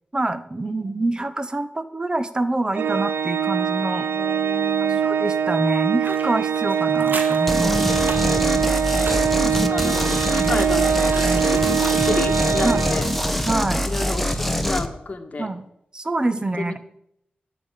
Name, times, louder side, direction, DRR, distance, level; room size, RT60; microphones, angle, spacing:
voice 1, 0.1-4.0 4.8-7.7 10.3-10.5 12.6-12.9 13.4-13.9 15.4-15.7 15.9-16.8, right 2 dB, 25° right, 12 dB, 0.9 m, -26 dB
Organ, 2.7-13.5, right 8 dB, 90° right, 0.6 m, -23 dB
voice 2, 3.9-5.0 7.6-8.7 9.4-13.1 13.9-15.5 16.5-16.8, left 3 dB, 45° left, 4 dB, 1.8 m, -31 dB
sound 1, 6.0-13.6 13.9-14.0, right 3 dB, 70° right, 2.0 m, -37 dB
sound 2, 7.5-14.9, equal, 5° left, 1.1 m, -24 dB
10.5 x 6.9 x 9.0 m, 0.76 s
wide cardioid pair, 90°, 3 cm